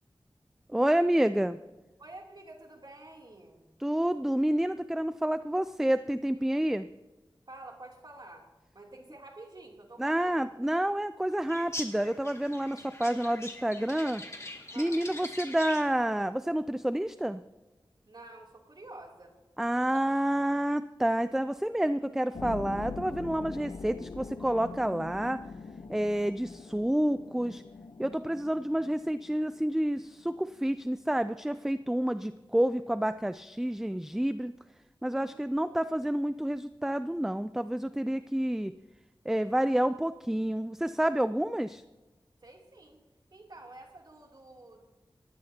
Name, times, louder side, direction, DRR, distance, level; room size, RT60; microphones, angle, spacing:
voice 1, 0.7-1.6 3.8-6.9 10.0-14.2 14.8-17.4 19.6-25.4 25.9-27.6 28.0-34.5 35.0-38.7 39.3-41.8, right 1 dB, 5° right, 12 dB, 0.4 m, -29 dB
voice 2, 2.0-3.6 7.5-10.4 14.7-15.0 18.1-19.4 19.7-20.0 35.1-35.5 42.4-43.0 43.3-44.9, right 2 dB, 55° right, 0 dB, 3.0 m, -49 dB
sound 1, 11.5-16.0, left 1 dB, 35° left, 2.1 m, -43 dB
sound 2, 22.3-30.9, left 4 dB, 85° left, 0.7 m, -43 dB
20.5 x 15.5 x 2.8 m, 1.1 s
wide cardioid pair, 80°, 9 cm